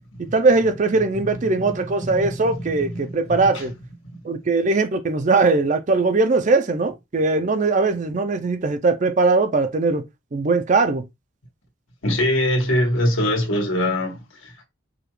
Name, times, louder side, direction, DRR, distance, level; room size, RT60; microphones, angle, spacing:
voice 1, 0.2-3.7 4.2-10.0 10.3-11.1, right 3 dB, 40° right, 0.4 m, -20 dB
voice 2, 2.9-3.4 12.0-14.6, left 1 dB, 80° left, 1.5 m, -22 dB
4.8 x 2.3 x 3.1 m
head